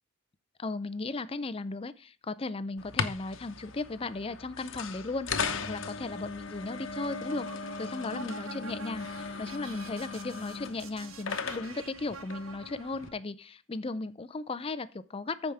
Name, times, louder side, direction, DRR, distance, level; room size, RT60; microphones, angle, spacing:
voice 1, 0.6-15.5, left 3 dB, 25° left, 15 dB, 0.4 m, -36 dB
sound 1, 2.8-13.1, left 5 dB, 60° left, 1.0 m, -38 dB
sound 2, 6.8-13.1, right 3 dB, 65° right, 1.1 m, -47 dB
14.0 x 5.0 x 3.4 m, 0.35 s
head